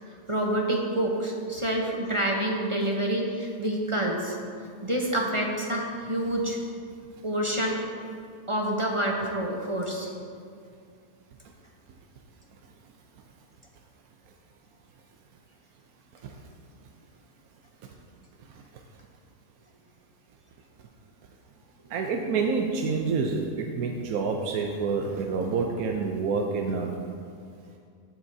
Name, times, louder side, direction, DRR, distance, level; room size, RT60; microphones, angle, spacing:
voice 1, 0.3-4.4 4.8-6.6 7.2-7.8 8.5-10.1, right 1 dB, 25° right, -1 dB, 0.8 m, -27 dB
voice 2, 21.9-26.9, right 4 dB, 70° right, 2 dB, 1.1 m, -28 dB
15.0 x 8.7 x 2.7 m, 2.2 s
omnidirectional pair, 1.7 m